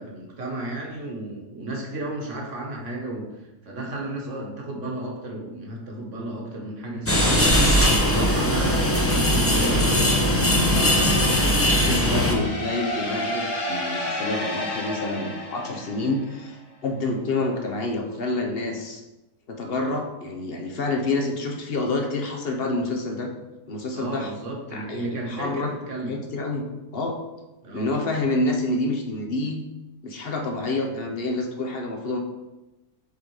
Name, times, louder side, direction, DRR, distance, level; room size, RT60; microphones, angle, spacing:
voice 1, 0.0-3.3 3.6-10.0 23.9-26.3 27.6-27.9, right 2 dB, 50° right, -1 dB, 1.6 m, -33 dB
sound 1, 7.1-12.3, left 1 dB, 15° left, 0.5 m, -20 dB
voice 2, 11.4-19.0 19.5-23.3 23.7-24.3 24.7-25.7 26.1-26.7 26.9-27.2 27.7-29.6 30.0-32.2, left 2 dB, 45° left, 2 dB, 0.8 m, -28 dB
sound 2, 11.7-16.5, left 1 dB, 80° left, 2.0 m, -31 dB
7.1 x 4.0 x 4.7 m, 1.0 s
omnidirectional pair, 1.7 m